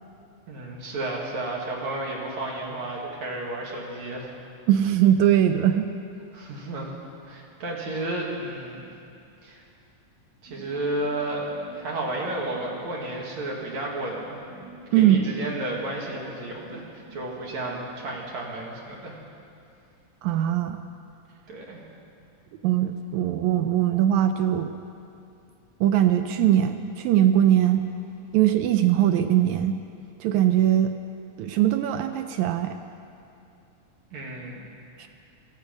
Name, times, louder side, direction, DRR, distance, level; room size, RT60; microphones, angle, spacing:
voice 1, 0.5-4.3 6.3-7.0 7.2-8.9 9.4-9.6 10.4-11.5 11.7-14.4 14.9-19.1 21.5-21.8 34.1-34.6, right 2 dB, 60° right, -2 dB, 3.2 m, -32 dB
voice 2, 4.7-5.9 14.9-15.2 20.2-20.8 22.6-24.7 25.8-27.8 28.3-29.8 30.2-30.9 31.4-32.8 35.0-35.1, right 11 dB, 80° right, 8 dB, 1.8 m, -21 dB
sound 1, 10.5-18.1, right 2 dB, 15° right, 5.3 m, -47 dB
18.0 x 14.0 x 5.2 m, 2.6 s
omnidirectional pair, 3.6 m